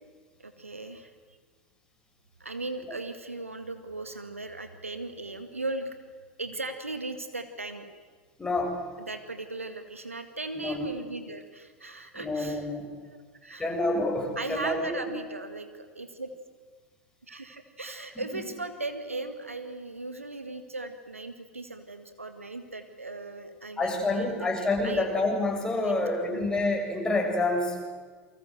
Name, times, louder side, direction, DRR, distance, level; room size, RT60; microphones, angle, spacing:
voice 1, 0.4-1.1 2.4-6.0 6.4-7.9 9.1-12.7 13.0-13.7 14.4-16.3 17.3-25.1 25.7-25.9 26.2-26.5, right 2 dB, 85° right, 8 dB, 2.0 m, -38 dB
voice 2, 8.4-8.9 10.5-10.9 12.1-12.9 13.6-15.1 23.8-27.8, left 2 dB, 10° left, 1 dB, 7.5 m, -28 dB
29.0 x 24.0 x 7.9 m, 1.5 s
figure-of-eight pair, 80°, 7 cm